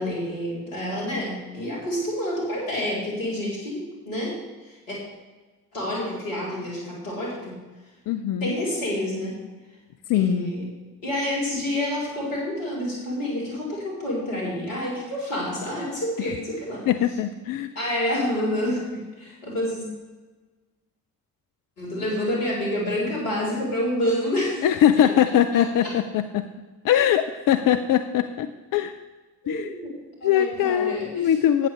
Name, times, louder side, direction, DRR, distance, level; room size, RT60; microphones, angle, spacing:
voice 1, 0.0-4.4 4.7-5.0 5.7-7.6 8.4-9.4 10.1-10.6 11.0-16.9 17.8-19.8 21.8-24.7 25.5-25.9 29.4-29.9 30.2-31.3, left 1 dB, 75° left, -5 dB, 3.7 m, -28 dB
voice 2, 8.1-8.6 10.1-10.5 16.2-16.3 16.9-17.7 24.6-26.5 26.8-28.9 29.5-29.7 30.2-31.7, left 10 dB, 45° left, 9 dB, 0.6 m, -22 dB
11.5 x 9.2 x 3.3 m, 1.3 s
figure-of-eight pair, 45°, 47 cm